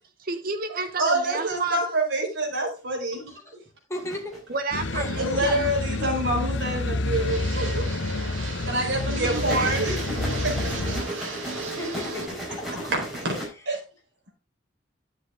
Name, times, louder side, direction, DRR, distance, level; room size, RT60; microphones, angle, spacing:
voice 1, 0.2-1.8 4.5-5.7 9.2-9.8, right 3 dB, 50° right, 1.0 m, -30 dB
voice 2, 1.0-3.3 5.2-7.8 8.7-11.3 12.7-13.3 13.7-13.8, right 1 dB, 65° right, 4.3 m, -27 dB
voice 3, 3.9-4.4 4.9-5.6 11.7-12.9, left 1 dB, 15° left, 2.3 m, -35 dB
sound 1, 3.9-4.6 6.5-7.2 9.1-13.5, equal, ahead, 4.4 m, -35 dB
sound 2, 4.7-11.0, left 2 dB, 65° left, 0.8 m, -29 dB
Fixed-wing aircraft airplane, 7.1-12.3, right 3 dB, 90° right, 2.4 m, -36 dB
10.5 x 7.6 x 3.6 m
head